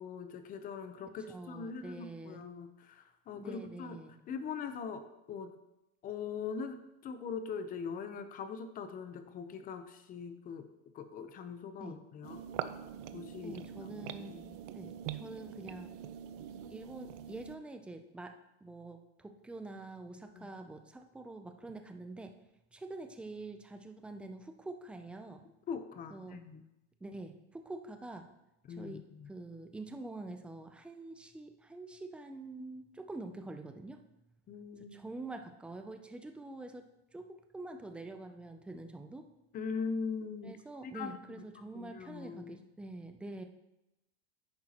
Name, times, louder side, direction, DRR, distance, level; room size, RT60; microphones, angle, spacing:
voice 1, 0.0-4.0 4.3-5.6 6.0-10.7 10.9-12.4 13.1-14.6 20.3-20.5 25.7-26.6 28.7-29.3 34.5-35.0 39.5-40.5 40.8-41.4 41.7-42.6, left 5 dB, 25° left, 9 dB, 0.7 m, -41 dB
voice 2, 1.3-2.4 3.4-4.2 11.8-12.0 13.4-14.4 14.7-15.9 16.7-22.3 22.7-25.4 26.1-26.4 27.0-28.3 28.7-34.0 34.7-39.3 40.4-43.4, right 2 dB, 5° right, 6 dB, 0.3 m, -46 dB
sound 1, 12.2-17.6, right 10 dB, 50° right, 0.6 m, -43 dB
10.5 x 8.8 x 2.9 m, 0.91 s
supercardioid pair, 150°, 34 cm